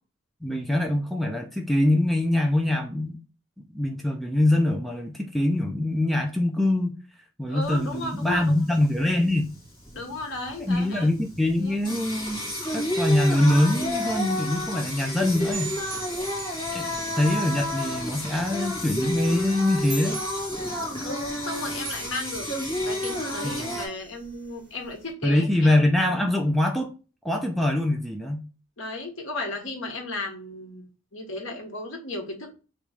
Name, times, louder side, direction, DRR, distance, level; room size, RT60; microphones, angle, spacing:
voice 1, 0.4-3.2 3.7-6.9 7.4-9.5 10.6-12.4 12.7-15.7 16.7-16.9 17.2-20.2 23.4-23.7 25.2-26.9 27.2-28.5, left 1 dB, ahead, 0.5 m, -23 dB
voice 2, 7.5-8.5 9.9-11.1 11.6-11.7 21.0-22.5 22.8-25.7 28.8-32.5, left 2 dB, 70° left, 1.3 m, -34 dB
Singing, 7.6-23.9, left 1 dB, 25° left, 1.6 m, -31 dB
sound 1, 15.5-25.1, right 5 dB, 55° right, 1.7 m, -42 dB
3.3 x 3.1 x 4.7 m
head